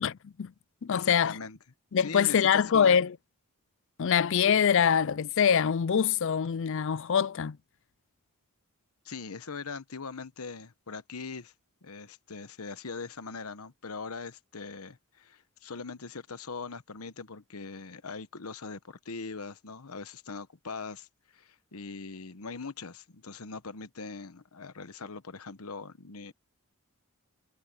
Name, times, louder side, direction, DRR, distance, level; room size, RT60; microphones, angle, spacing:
voice 1, 0.0-0.5 0.8-1.4 1.9-3.2 4.0-7.6, left 7 dB, 60° left, 0.4 m, -24 dB
voice 2, 0.9-1.6 2.0-3.0 9.0-11.5 11.8-21.1 21.3-26.3, left 4 dB, 75° left, 1.1 m, -41 dB
head